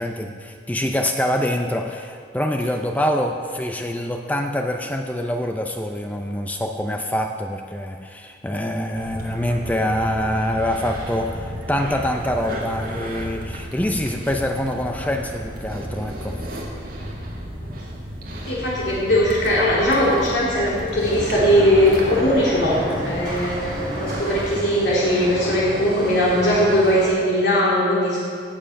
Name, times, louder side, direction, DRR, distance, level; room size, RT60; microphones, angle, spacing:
voice 1, 0.0-16.4 17.7-17.8, left 1 dB, 10° left, 4 dB, 0.5 m, -25 dB
sound 1, 8.9-24.6, equal, 50° right, 2.1 m, -33 dB
voice 2, 18.5-28.2, equal, 75° left, -6 dB, 2.7 m, -19 dB
sound 2, 20.9-27.1, equal, 25° right, 3.5 m, -31 dB
17.5 x 7.5 x 5.8 m, 2.2 s
head